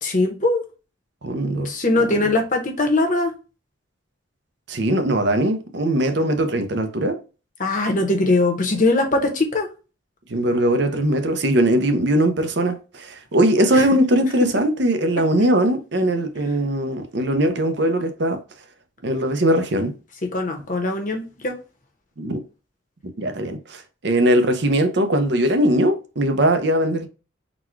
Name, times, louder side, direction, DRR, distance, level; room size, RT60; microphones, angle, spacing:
voice 1, 0.0-0.6 1.6-3.3 7.6-9.7 13.7-13.9 20.3-21.6, left 2 dB, 40° left, 0.9 m, -21 dB
voice 2, 1.2-2.1 4.7-7.2 10.3-18.4 19.0-19.9 22.2-22.4 23.2-27.1, right 1 dB, 55° right, 0.6 m, -20 dB
4.1 x 2.3 x 4.4 m
head